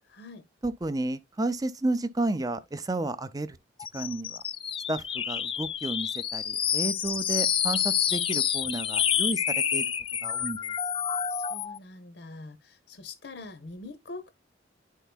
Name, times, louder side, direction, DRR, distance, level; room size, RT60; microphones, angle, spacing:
voice 1, 0.1-0.5 11.3-14.3, left 2 dB, 60° left, 0.7 m, -44 dB
voice 2, 0.6-3.6 3.9-4.4 4.9-9.9 10.2-10.7, right 2 dB, 20° right, 0.5 m, -32 dB
sound 1, 3.8-11.8, left 8 dB, 30° left, 0.3 m, -28 dB
11.0 x 4.6 x 2.2 m
head